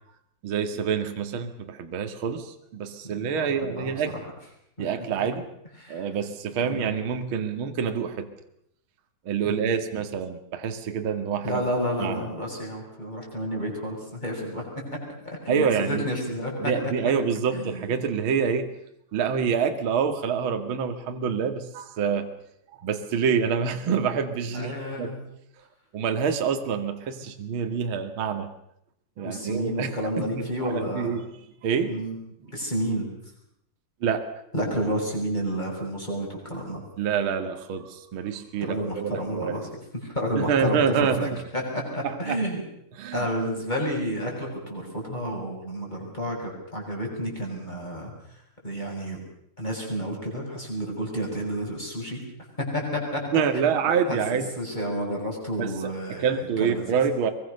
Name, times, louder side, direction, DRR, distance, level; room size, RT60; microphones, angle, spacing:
voice 1, 0.4-4.1 4.8-5.5 5.9-8.3 9.2-11.6 12.0-12.3 15.5-16.0 16.6-18.7 19.1-22.3 22.8-24.7 25.0-25.2 25.9-28.5 29.2-31.4 31.6-31.9 32.4-32.6 34.0-34.2 37.0-39.7 40.4-41.4 42.0-42.4 42.9-43.3 53.3-54.5 55.6-57.3, right 6 dB, 45° right, 6 dB, 1.8 m, -27 dB
voice 2, 3.1-3.9 4.8-4.9 5.8-6.1 6.6-6.9 9.4-9.7 11.4-15.0 15.2-16.7 17.5-17.8 24.5-25.2 29.2-31.1 31.9-32.1 32.5-33.1 34.5-36.8 38.6-39.6 40.0-42.6 43.1-48.1 48.6-49.2 49.6-52.2 52.6-53.2 53.5-53.7 54.1-56.3 56.6-57.0, equal, 10° left, -1 dB, 7.6 m, -30 dB
23.5 x 23.0 x 6.8 m, 0.74 s
omnidirectional pair, 5.1 m